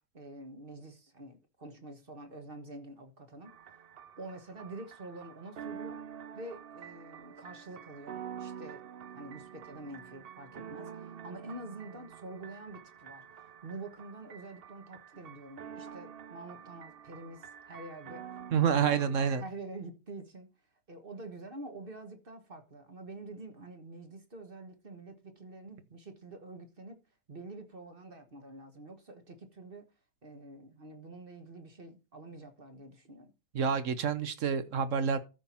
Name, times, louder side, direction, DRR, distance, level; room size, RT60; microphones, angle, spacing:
voice 1, 0.1-3.8 4.2-6.0 6.3-8.8 9.1-18.4 18.9-19.1 19.4-20.5 20.9-27.0 27.3-29.9 30.2-33.3, right 2 dB, 35° right, 1.3 m, -47 dB
sound 1, 3.4-19.4, right 8 dB, 80° right, 0.5 m, -47 dB
voice 2, 18.5-19.4 33.5-35.2, right 7 dB, 55° right, 0.9 m, -28 dB
13.5 x 5.7 x 4.4 m
omnidirectional pair, 1.9 m